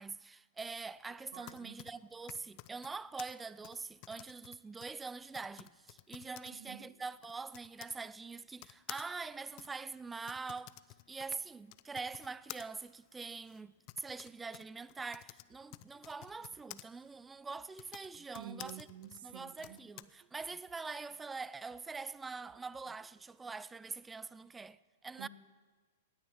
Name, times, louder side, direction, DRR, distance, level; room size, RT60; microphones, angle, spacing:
voice 1, 0.0-10.7 11.1-18.9 19.2-25.3, right 4 dB, 10° right, 0.4 m, -44 dB
Typing, 1.2-8.0 8.6-16.8 17.6-20.0, left 19 dB, 45° left, 0.5 m, -53 dB
voice 2, 1.3-1.8 6.4-6.9 18.4-19.8 25.2-25.3, right 9 dB, 60° right, 1.1 m, -50 dB
sound 1, 15.5-23.8, right 8 dB, 40° right, 1.5 m, -70 dB
18.0 x 10.0 x 7.1 m
hypercardioid pair, 110°, 0 cm